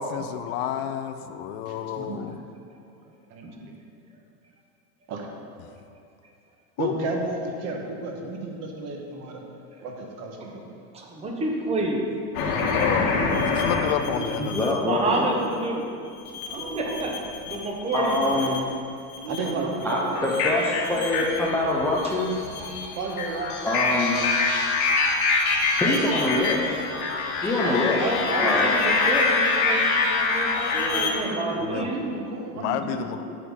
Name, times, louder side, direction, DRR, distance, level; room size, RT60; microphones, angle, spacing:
voice 1, 0.0-2.4 6.8-6.9 12.7-13.2 13.5-14.8 31.6-31.9 32.6-33.2, left 9 dB, 60° left, 9 dB, 0.6 m, -29 dB
voice 2, 1.7-2.3 3.3-3.5 5.1-5.3 6.8-9.5 9.8-10.7 12.9-13.1 19.3-20.0 23.0-23.7, right 3 dB, 35° right, 1 dB, 1.2 m, -32 dB
voice 3, 10.9-12.1 14.8-15.9 16.8-17.1 17.5-18.6 25.8-26.3 27.6-32.0, right 2 dB, 15° right, 0 dB, 0.9 m, -29 dB
sound 1, 12.3-14.7 16.3-17.6 17.9-18.7 19.1-31.1, left 4 dB, 80° left, 1.7 m, -25 dB
voice 4, 13.0-13.5 14.0-14.3 16.5-17.1 19.2-21.9 30.7-33.2, right 3 dB, 90° right, -2 dB, 1.9 m, -35 dB
voice 5, 14.4-15.3 17.9-18.6 19.8-20.6 20.9-22.4 23.6-24.2 25.8-26.7 27.4-28.0 28.4-28.7, left 2 dB, 5° left, -5 dB, 0.4 m, -24 dB
9.0 x 4.1 x 7.3 m, 2.5 s
supercardioid pair, 155°, 43 cm